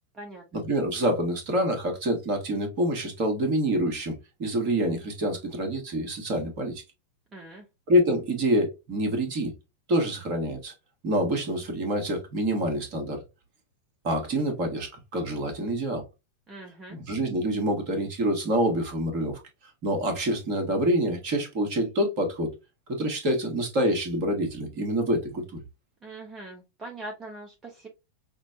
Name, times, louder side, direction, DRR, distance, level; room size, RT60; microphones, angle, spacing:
voice 1, 0.5-6.8 7.9-9.5 9.9-10.7 11.0-13.2 14.0-16.0 16.9-19.4 19.8-22.5 22.9-25.6, equal, 45° right, 1.4 m, -26 dB
voice 2, 7.3-7.7 16.5-17.0 26.0-27.9, right 2 dB, 20° right, 0.8 m, -42 dB
5.8 x 2.1 x 2.6 m
figure-of-eight pair, 90°, 0 cm